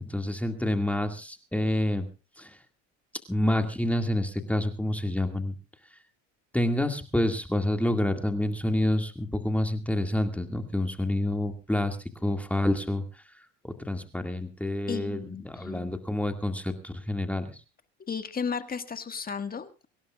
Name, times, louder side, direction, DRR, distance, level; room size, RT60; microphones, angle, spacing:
voice 1, 0.1-2.1 2.4-2.6 3.3-5.5 6.5-12.0 12.2-13.0 13.9-17.5, left 1 dB, 5° left, 5 dB, 2.1 m, -28 dB
voice 2, 14.9-15.9 18.1-19.9, left 6 dB, 25° left, 9 dB, 1.7 m, -34 dB
25.0 x 16.5 x 2.4 m, 0.31 s
supercardioid pair, 110°, 36 cm